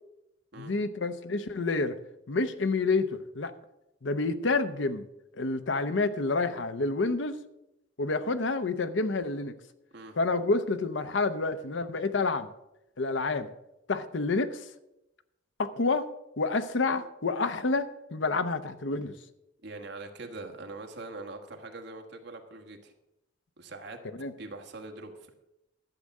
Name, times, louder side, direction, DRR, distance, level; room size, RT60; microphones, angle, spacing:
voice 1, 0.6-1.9 2.3-3.5 4.0-5.0 5.4-7.4 8.0-9.5 10.2-12.5 13.0-13.5 13.9-14.6 15.6-16.1 16.4-19.1 24.2-24.3, left 3 dB, 70° left, 11 dB, 0.8 m, -28 dB
voice 2, 19.6-22.9 23.6-24.0 24.4-25.3, right 3 dB, 65° right, 4 dB, 1.6 m, -43 dB
12.0 x 7.4 x 6.5 m, 0.90 s
head